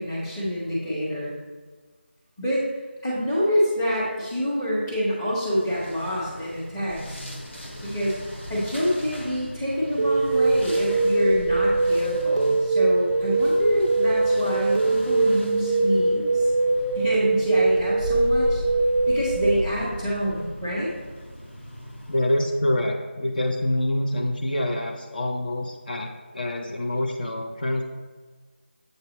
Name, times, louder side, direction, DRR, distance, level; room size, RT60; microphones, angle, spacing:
voice 1, 0.0-1.3 2.4-2.6 3.0-7.3 7.8-8.2 8.5-16.5 16.9-18.6 19.1-20.9, equal, 5° left, -8 dB, 0.8 m, -27 dB
sound 1, 5.5-22.6, equal, 85° left, 1.7 m, -38 dB
sound 2, 10.0-19.5, right 2 dB, 30° right, 0.4 m, -22 dB
voice 2, 22.1-27.8, left 1 dB, 45° left, 2 dB, 0.5 m, -26 dB
7.6 x 2.7 x 5.1 m, 1.4 s
figure-of-eight pair, 170°, 6 cm